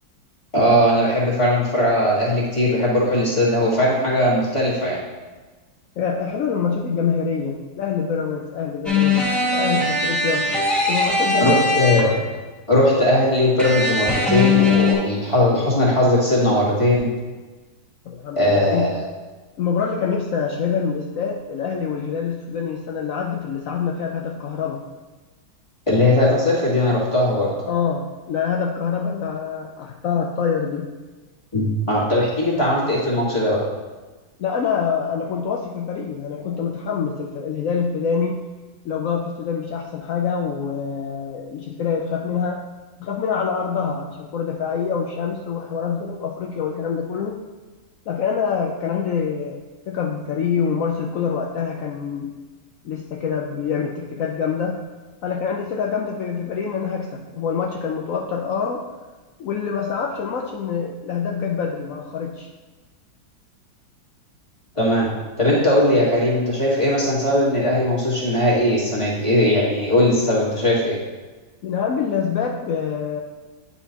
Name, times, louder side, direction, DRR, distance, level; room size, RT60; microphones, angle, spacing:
voice 1, 0.5-5.0 11.3-12.1 12.7-17.1 18.4-19.0 25.9-27.5 31.5-33.6 64.7-65.1 65.4-71.0, left 1 dB, 15° left, -6 dB, 1.6 m, -19 dB
voice 2, 6.0-10.5 10.9-11.7 18.0-18.9 19.6-24.8 27.7-30.9 34.4-38.4 38.8-42.6 43.0-47.4 48.1-49.6 49.9-52.3 52.8-54.8 55.2-58.8 59.4-62.5 71.6-73.2, left 6 dB, 85° left, 0 dB, 0.7 m, -25 dB
sound 1, 8.8-12.3 13.6-14.9, left 3 dB, ahead, 1.2 m, -20 dB
9.1 x 5.7 x 2.9 m, 1.3 s
omnidirectional pair, 2.1 m